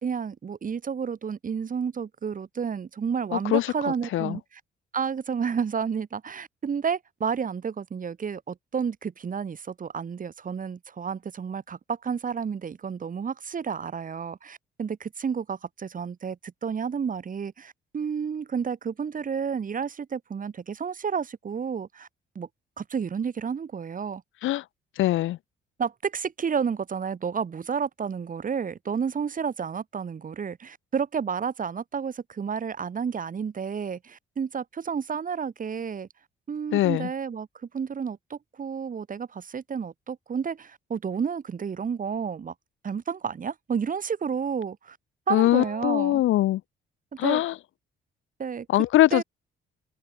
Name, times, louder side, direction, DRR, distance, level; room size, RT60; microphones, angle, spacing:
voice 1, 0.0-4.4 4.9-22.1 22.3-22.5 22.8-24.2 25.8-36.1 36.5-37.5 37.7-42.5 42.8-45.0 45.3-46.2 47.2-47.4 48.4-48.7 49.1-49.2, right 6 dB, 45° right, 2.6 m, -31 dB
voice 2, 3.3-3.7 4.1-4.4 24.4-24.6 25.0-25.4 36.7-37.1 45.3-46.6 47.2-47.6 48.7-49.2, left 15 dB, 80° left, 1.1 m, -22 dB
open air
cardioid pair, 90°, 20 cm